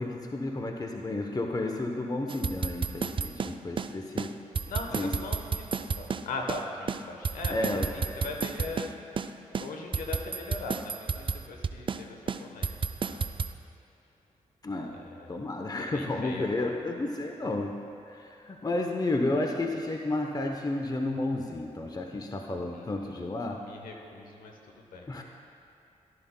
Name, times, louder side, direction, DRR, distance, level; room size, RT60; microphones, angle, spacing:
voice 1, 0.0-4.3 4.9-5.1 7.5-7.9 14.6-14.9 15.3-17.7 18.1-23.6 25.1-25.2, left 2 dB, 30° left, 3 dB, 0.8 m, -32 dB
sound 1, 2.3-3.9 4.2-4.3 4.6-6.6 6.9-8.9 9.2-9.3 9.5-12.0 12.3-13.5, right 5 dB, 40° right, 0.4 m, -31 dB
voice 2, 4.7-8.9 9.5-12.8 13.0-13.3 14.9-16.7 22.7-23.2 23.6-25.2, left 3 dB, 85° left, 2 dB, 1.0 m, -40 dB
12.0 x 11.5 x 2.2 m, 2.6 s
cardioid pair, 50°, 14 cm